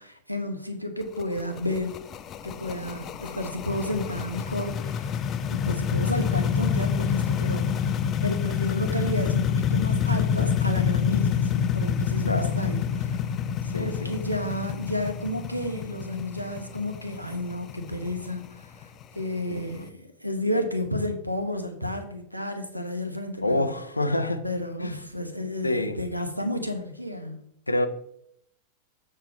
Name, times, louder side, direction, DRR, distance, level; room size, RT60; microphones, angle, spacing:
voice 1, 0.0-2.0 2.4-5.2 5.5-7.9 8.2-13.2 13.8-18.9 19.1-23.7 24.4-27.4, left 1 dB, 90° right, 6 dB, 1.0 m, -31 dB
sound 1, 1.0-19.8, left 7 dB, 30° left, 0.5 m, -27 dB
voice 2, 13.6-14.1 19.5-19.6 23.4-24.4 24.8-24.9 25.6-26.0 27.7-27.9, left 1 dB, 85° left, 10 dB, 0.6 m, -26 dB
7.3 x 4.4 x 5.1 m, 0.72 s
figure-of-eight pair, 90°, 0 cm